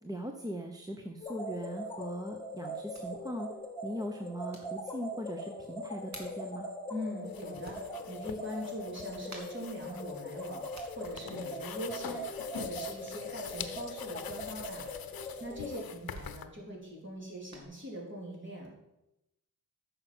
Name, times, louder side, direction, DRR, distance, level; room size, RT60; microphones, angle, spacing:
voice 1, 0.0-3.5 3.8-6.7, equal, 10° right, 3 dB, 0.8 m, -40 dB
sound 1, 1.2-15.8, left 1 dB, 15° left, 2.0 m, -41 dB
sound 2, 1.4-17.7, right 1 dB, 50° right, 2.2 m, -56 dB
voice 2, 6.9-10.6 10.9-12.2 12.5-14.8 15.2-18.7, equal, 35° right, -3 dB, 3.6 m, -42 dB
sound 3, 7.2-16.4, left 8 dB, 75° left, 0.7 m, -45 dB
9.6 x 6.5 x 6.1 m, 0.91 s
wide cardioid pair, 100°, 35 cm